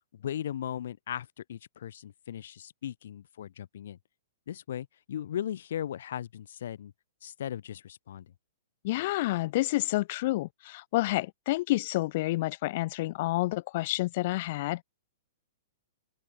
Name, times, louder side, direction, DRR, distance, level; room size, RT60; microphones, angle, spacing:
voice 1, 0.1-4.0 4.5-6.9 7.2-8.3, left 10 dB, 65° left, 4.5 m, -37 dB
voice 2, 8.8-14.8, left 18 dB, 40° left, 3.1 m, -29 dB
open air
hypercardioid pair, 165°, 0 cm